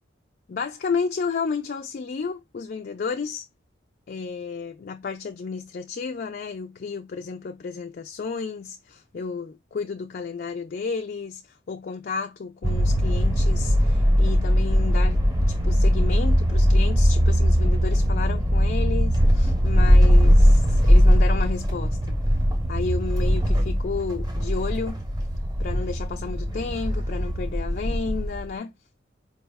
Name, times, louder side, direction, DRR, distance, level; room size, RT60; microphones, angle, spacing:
voice 1, 0.5-3.5 4.1-22.2 22.7-25.0 25.6-28.7, left 5 dB, 50° left, 0.3 m, -32 dB
sound 1, 12.6-28.5, equal, 20° right, 0.7 m, -20 dB
4.6 x 2.1 x 3.4 m
head